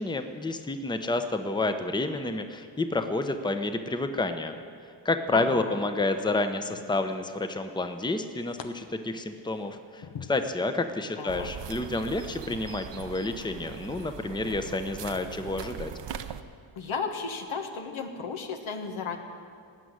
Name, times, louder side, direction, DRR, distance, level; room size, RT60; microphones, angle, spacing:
voice 1, 0.0-4.6 5.0-15.9, left 2 dB, 10° left, 8 dB, 0.8 m, -29 dB
voice 2, 5.3-5.9 11.2-11.5 16.7-19.2, left 5 dB, 80° left, 4 dB, 1.4 m, -34 dB
sound 1, 5.7-6.0 6.7-7.6 7.9-8.7 9.1-11.0 11.5-11.7 12.4-12.6, left 7 dB, 65° left, 1.0 m, -46 dB
sound 2, 11.3-16.4, right 8 dB, 65° right, 0.8 m, -41 dB
17.0 x 6.2 x 9.5 m, 2.2 s
cardioid pair, 80°, 47 cm